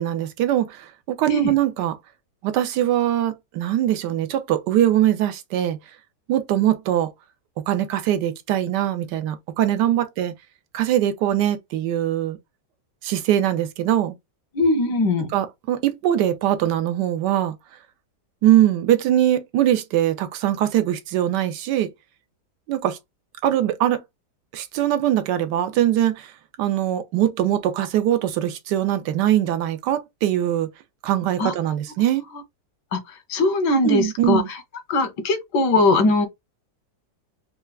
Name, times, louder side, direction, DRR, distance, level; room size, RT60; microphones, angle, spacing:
voice 1, 0.0-2.0 2.4-5.8 6.3-7.1 7.7-10.3 10.7-12.4 13.0-14.1 15.3-17.5 18.4-21.9 22.7-23.0 23.4-24.0 24.5-26.3 26.6-30.7 31.0-32.2 33.8-34.5, right 12 dB, 80° right, 1.2 m, -22 dB
voice 2, 14.5-15.3 31.4-31.5 32.9-33.0 33.3-34.4 34.9-36.3, left 2 dB, 85° left, 1.4 m, -20 dB
4.5 x 2.2 x 2.3 m
omnidirectional pair, 1.8 m